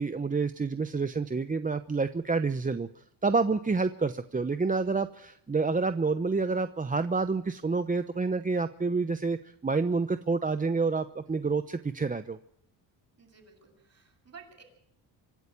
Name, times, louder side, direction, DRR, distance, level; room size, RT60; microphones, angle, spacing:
voice 1, 0.0-12.4, right 4 dB, 20° right, 10 dB, 0.9 m, -28 dB
voice 2, 13.2-14.6, right 6 dB, 35° right, 4 dB, 7.8 m, -53 dB
25.0 x 12.5 x 8.6 m, 0.74 s
cardioid pair, 85°, 45 cm